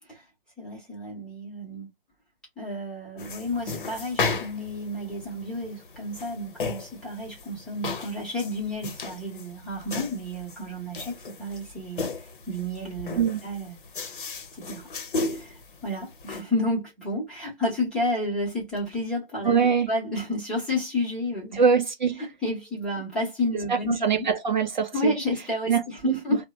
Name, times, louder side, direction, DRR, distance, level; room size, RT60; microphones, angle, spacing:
voice 1, 0.6-1.9 2.6-13.8 14.1-14.2 14.5-14.9 15.3-21.6 22.2-24.3 24.9-26.5, left 1 dB, ahead, 0.8 m, -31 dB
sound 1, 3.2-16.4, left 3 dB, 55° left, 0.7 m, -35 dB
voice 2, 19.4-19.9 21.5-22.3 23.7-25.1 25.7-26.2, right 6 dB, 50° right, 0.5 m, -23 dB
3.1 x 2.1 x 2.3 m
figure-of-eight pair, 145°, 30 cm